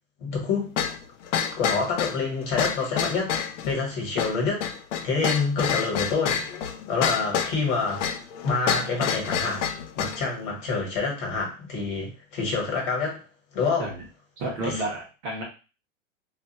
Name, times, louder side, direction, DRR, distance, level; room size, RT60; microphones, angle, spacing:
voice 1, 0.2-0.7 1.5-3.4 3.6-4.7 5.0-6.4 6.9-9.6 10.0-13.2 13.5-13.9 14.6-14.8, left 4 dB, 40° left, 0 dB, 1.2 m, -27 dB
sound 1, 0.8-10.2, left 8 dB, 85° left, 0.6 m, -28 dB
voice 2, 14.4-15.4, right 2 dB, 25° right, -3 dB, 0.6 m, -31 dB
2.4 x 2.1 x 3.9 m, 0.33 s
supercardioid pair, 165°, 36 cm